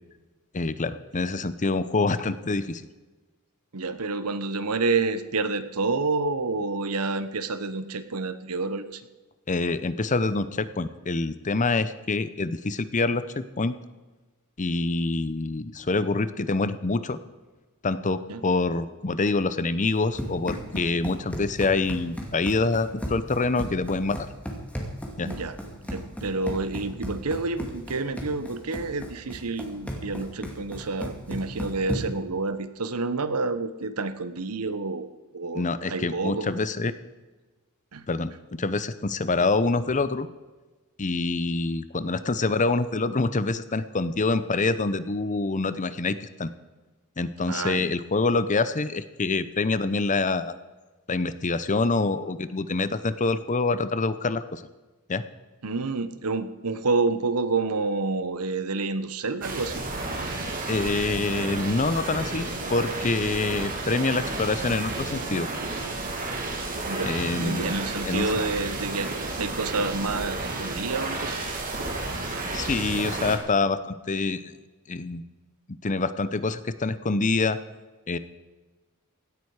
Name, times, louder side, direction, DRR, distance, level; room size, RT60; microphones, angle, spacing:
voice 1, 0.5-2.9 9.5-13.8 14.6-17.2 17.8-24.3 25.2-25.3 35.5-37.0 38.1-40.3 41.0-46.5 47.2-50.5 51.1-54.6 55.1-55.2 60.7-65.5 67.0-67.7 68.1-68.3 72.5-74.5 74.9-75.2 75.8-77.6 78.1-78.2, left 3 dB, 35° left, 14 dB, 0.7 m, -26 dB
voice 2, 3.7-9.0 18.3-18.4 25.2-25.5 25.8-35.1 35.3-36.5 37.9-38.0 47.5-47.9 55.6-59.7 66.8-69.1 69.4-71.4, right 3 dB, 90° right, 11 dB, 1.0 m, -29 dB
Run, 19.8-32.3, equal, 5° left, 2.3 m, -36 dB
sound 1, 59.4-73.4, right 2 dB, 40° right, 2.5 m, -32 dB
17.0 x 12.5 x 4.9 m, 1.2 s
head